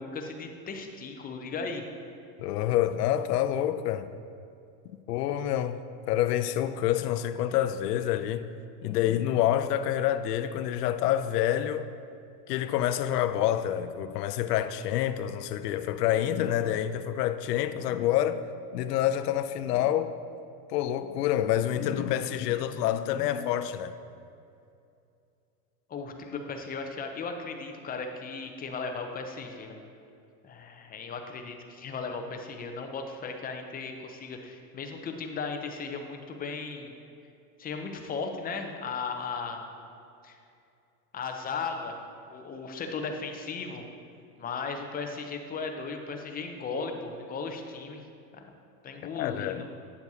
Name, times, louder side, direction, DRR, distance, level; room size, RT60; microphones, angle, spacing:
voice 1, 0.0-1.9 25.9-29.8 30.4-36.9 37.6-39.6 40.2-40.4 41.1-42.0 42.3-43.8 44.4-48.0 48.3-48.4 48.8-49.7, left 4 dB, 20° left, 0.6 m, -36 dB
voice 2, 2.4-4.1 5.1-8.5 8.8-11.9 12.5-18.4 18.7-20.1 20.7-23.9 49.1-49.6, left 11 dB, 85° left, 0.6 m, -27 dB
9.5 x 6.9 x 2.8 m
supercardioid pair, 115°, 47 cm